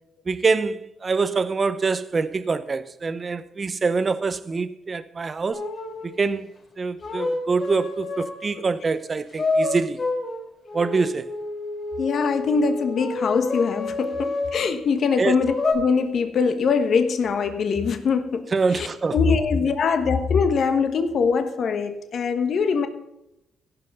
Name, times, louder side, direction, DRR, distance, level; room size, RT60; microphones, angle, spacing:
voice 1, 0.3-5.6 6.0-6.5 6.8-10.0 10.7-11.3 15.2-15.3 18.5-19.2, right 4 dB, 35° right, 0.7 m, -25 dB
sound 1, 5.5-6.1 7.0-8.6 9.4-14.6 15.4-15.7, left 3 dB, 40° left, 4.7 m, -28 dB
voice 2, 12.0-18.4 18.7-18.9 19.1-22.9, left 5 dB, 55° left, 1.3 m, -22 dB
16.5 x 5.7 x 5.5 m
cardioid pair, 90°, 0 cm